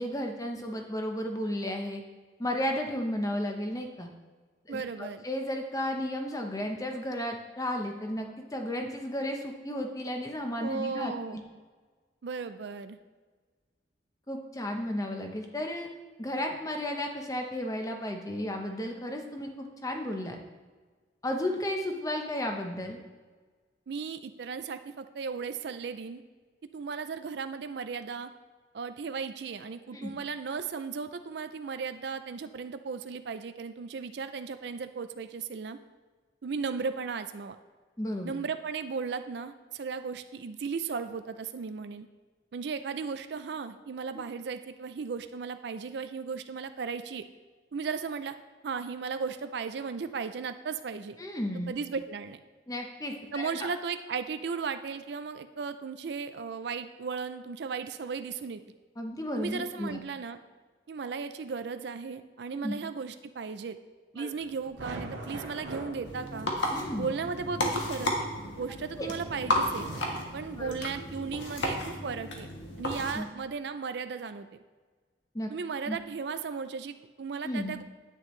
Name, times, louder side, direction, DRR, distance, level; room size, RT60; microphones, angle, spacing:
voice 1, 0.0-2.0 2.4-4.1 4.7-11.4 14.3-15.9 16.2-20.4 21.2-23.0 29.9-30.1 38.0-38.3 44.1-44.3 51.2-51.7 52.7-53.7 59.0-60.0 62.5-62.7 64.2-64.3 66.7-67.1 69.0-69.1 70.6-70.7 73.1-73.3 75.3-75.5 75.9-76.0 77.4-77.8, left 1 dB, 20° left, 3 dB, 0.8 m, -33 dB
voice 2, 4.7-5.2 10.6-11.4 12.2-13.0 23.9-26.2 26.7-28.3 28.7-35.8 36.4-37.6 38.2-42.1 42.5-47.2 47.7-48.4 48.6-51.2 51.7-52.4 53.3-58.6 59.4-60.4 60.9-63.8 64.1-66.5 67.0-68.1 68.6-69.9 70.3-72.5 72.8-74.5 75.5-77.8, right 5 dB, 65° right, 10 dB, 0.4 m, -36 dB
sound 1, 64.4-70.7, right 2 dB, 85° right, 1.3 m, -44 dB
sound 2, 66.0-73.1, left 1 dB, 75° left, 1.5 m, -33 dB
9.8 x 9.2 x 3.2 m, 1.4 s
head